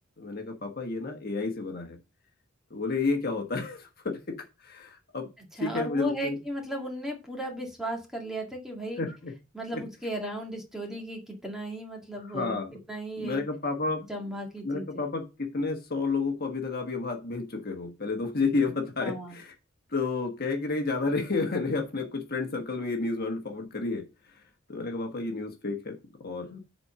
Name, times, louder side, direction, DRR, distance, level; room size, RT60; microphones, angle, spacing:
voice 1, 0.2-2.0 2.7-5.3 5.6-6.4 9.0-9.3 9.7-9.8 12.2-12.8 13.2-14.1 14.6-19.5 19.9-26.6, left 3 dB, 50° left, 3 dB, 1.5 m, -31 dB
voice 2, 5.6-9.0 9.5-12.6 12.9-13.4 14.1-15.0 19.0-19.4, right 1 dB, ahead, 0 dB, 2.0 m, -35 dB
7.8 x 4.4 x 5.6 m, 0.28 s
head